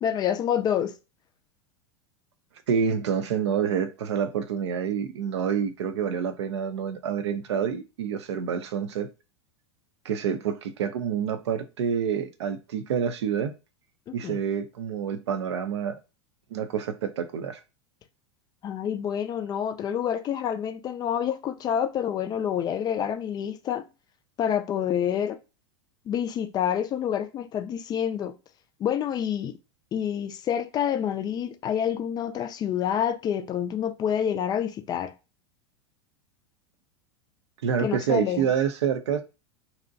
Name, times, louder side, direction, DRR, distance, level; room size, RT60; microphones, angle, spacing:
voice 1, 0.0-0.9 14.1-14.4 18.6-23.8 24.4-25.4 26.1-28.3 28.8-29.6 29.9-35.1 37.8-38.5, left 9 dB, 30° left, 0.3 m, -28 dB
voice 2, 2.7-9.1 10.0-13.5 14.1-16.0 16.5-17.6 37.6-39.2, right 7 dB, 75° right, 0.5 m, -27 dB
2.6 x 2.1 x 2.6 m
hypercardioid pair, 90°, 15 cm